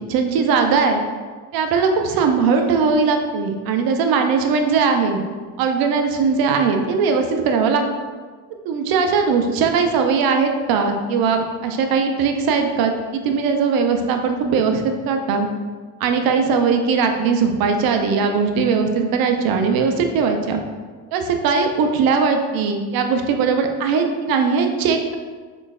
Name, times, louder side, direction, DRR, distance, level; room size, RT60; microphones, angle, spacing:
voice 1, 0.1-1.0 1.5-5.2 5.6-7.8 8.7-15.5 16.0-20.6 21.1-25.2, right 5 dB, 50° right, 5 dB, 0.6 m, -19 dB
3.9 x 3.2 x 2.3 m, 1.5 s
hypercardioid pair, 75°, 46 cm